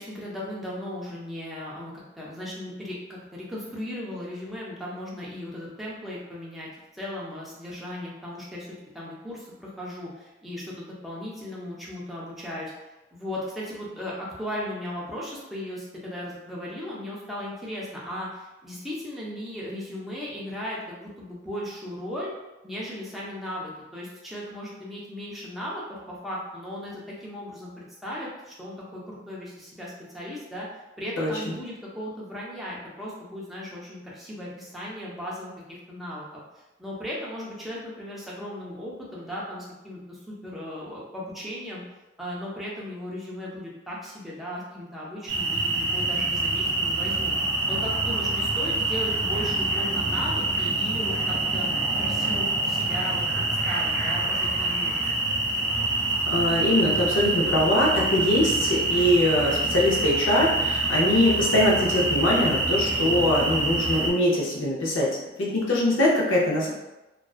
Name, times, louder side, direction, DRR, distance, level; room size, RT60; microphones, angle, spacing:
voice 1, 0.0-8.7 8.9-22.3 22.6-30.7 31.0-41.8 42.2-47.4 47.7-51.7 52.0-55.1, left 1 dB, ahead, -6 dB, 0.4 m, -37 dB
sound 1, 45.3-64.1, right 2 dB, 60° right, 0.6 m, -26 dB
voice 2, 56.3-66.7, left 1 dB, 80° left, -4 dB, 0.7 m, -22 dB
2.4 x 2.2 x 2.3 m, 1.0 s
head